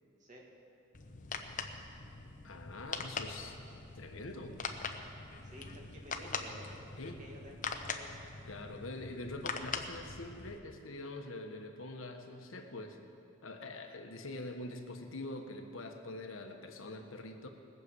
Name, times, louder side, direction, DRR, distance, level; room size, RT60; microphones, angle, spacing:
sound 1, 0.9-10.6, left 5 dB, 40° left, 0.9 m, -42 dB
voice 1, 2.4-3.6 4.0-4.6 7.0-7.2 8.4-13.0 13.4-17.5, left 2 dB, 75° left, 4 dB, 1.4 m, -44 dB
voice 2, 5.4-6.7 7.2-8.4, equal, 40° right, -1 dB, 2.2 m, -52 dB
20.0 x 7.0 x 8.1 m, 2.6 s
head